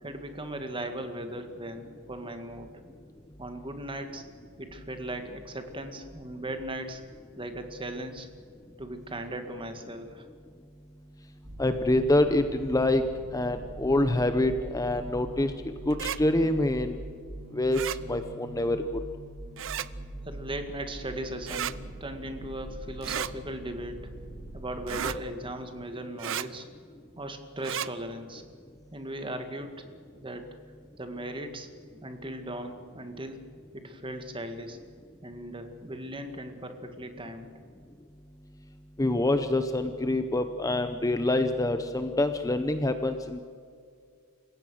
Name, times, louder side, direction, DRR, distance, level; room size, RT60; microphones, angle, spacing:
voice 1, 0.0-2.7 3.4-4.2 4.6-7.0 7.4-8.3 8.8-10.3 20.3-24.1 24.5-26.7 27.2-28.4 28.9-29.8 30.2-30.5 31.0-31.7 32.0-33.4 33.7-34.8 35.2-37.5, right 1 dB, 25° right, 6 dB, 2.0 m, -38 dB
sound 1, 11.4-25.1, right 1 dB, 40° right, 3.5 m, -43 dB
voice 2, 11.6-13.0 13.3-15.5 15.9-17.0 17.5-18.8 39.0-43.4, left 1 dB, 15° left, 8 dB, 0.7 m, -26 dB
sound 2, 15.9-16.2 17.7-18.0 19.6-19.9 21.5-21.8 23.0-23.3 24.9-25.2 26.2-26.5 27.6-27.9, right 9 dB, 60° right, 0.7 m, -33 dB
28.5 x 16.5 x 6.4 m, 2.3 s
head